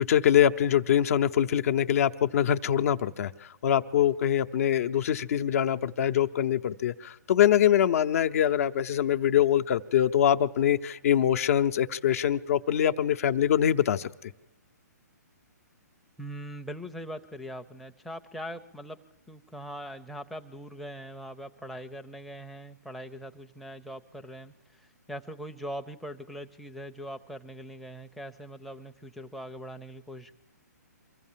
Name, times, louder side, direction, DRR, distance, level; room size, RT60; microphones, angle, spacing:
voice 1, 0.0-3.3 3.6-14.1, left 10 dB, 55° left, 10 dB, 0.7 m, -24 dB
voice 2, 16.2-19.0 19.3-30.3, equal, ahead, 4 dB, 0.6 m, -41 dB
24.0 x 14.5 x 7.5 m, 0.97 s
hypercardioid pair, 140°, 10 cm